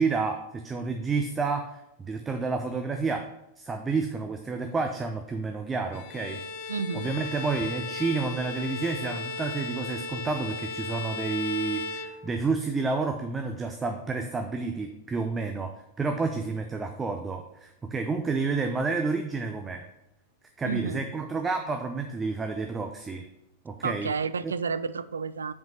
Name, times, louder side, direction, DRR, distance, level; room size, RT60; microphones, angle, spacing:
voice 1, 0.0-3.3 3.6-6.4 6.9-19.8 20.6-23.3 23.6-24.1 24.4-24.5, right 4 dB, 15° right, 5 dB, 0.6 m, -30 dB
Bowed string instrument, 5.9-12.7, left 4 dB, 50° left, 0.5 m, -36 dB
voice 2, 6.7-7.1 20.6-21.0 23.8-25.5, right 5 dB, 70° right, 15 dB, 0.3 m, -31 dB
5.9 x 5.2 x 5.6 m, 0.83 s
figure-of-eight pair, 90°, 0 cm